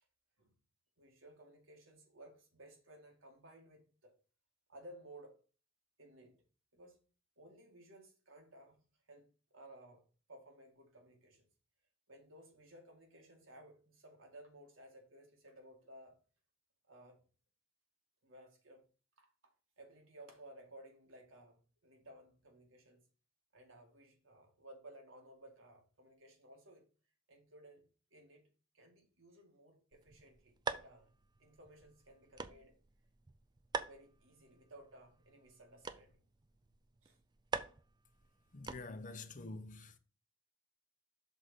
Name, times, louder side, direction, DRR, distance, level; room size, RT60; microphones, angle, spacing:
voice 1, 1.0-4.1 4.7-5.4 6.0-6.4 6.7-7.0 7.4-10.0 10.3-11.5 12.1-16.2 16.9-17.2 18.2-18.8 19.2-23.1 23.5-26.9 27.3-27.8 28.1-31.1 31.4-32.8 33.8-36.2 37.0-37.2 39.1-39.2, right 1 dB, 80° right, 2.1 m, -58 dB
sound 1, 29.9-39.2, right 4 dB, 20° right, 0.4 m, -46 dB
voice 2, 38.5-40.0, left 3 dB, 40° left, 0.7 m, -47 dB
6.2 x 4.0 x 5.9 m
head